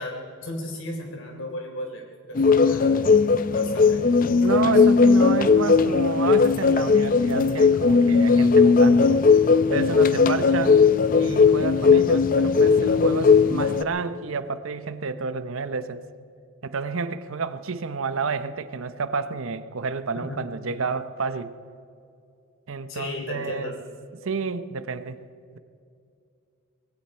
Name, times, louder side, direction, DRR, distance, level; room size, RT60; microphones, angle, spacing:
voice 1, 0.0-2.9 3.5-4.8 20.2-20.4 22.9-23.8, left 1 dB, 60° left, 2 dB, 3.4 m, -35 dB
sound 1, 2.4-13.8, left 5 dB, 40° left, 0.5 m, -18 dB
voice 2, 4.4-9.2 9.7-10.8 11.1-16.0 16.6-21.5 22.7-23.7 24.1-25.2, right 4 dB, 65° right, 12 dB, 0.7 m, -30 dB
19.0 x 16.5 x 4.4 m, 2.4 s
head